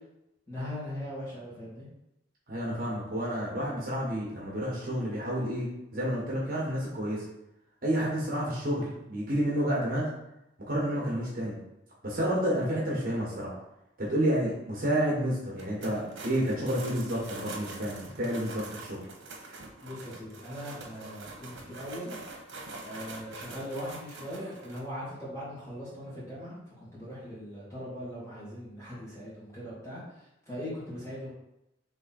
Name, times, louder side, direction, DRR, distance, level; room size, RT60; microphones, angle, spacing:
voice 1, 0.5-1.9 19.8-22.2 22.8-31.3, equal, 15° left, -9 dB, 1.7 m, -40 dB
voice 2, 2.5-7.2 7.8-10.1 10.7-11.6 12.0-13.5 14.0-19.0, equal, 45° right, -5 dB, 1.4 m, -30 dB
sound 1, 15.6-24.8, right 3 dB, 80° right, 0.9 m, -44 dB
3.9 x 3.3 x 4.2 m, 0.88 s
head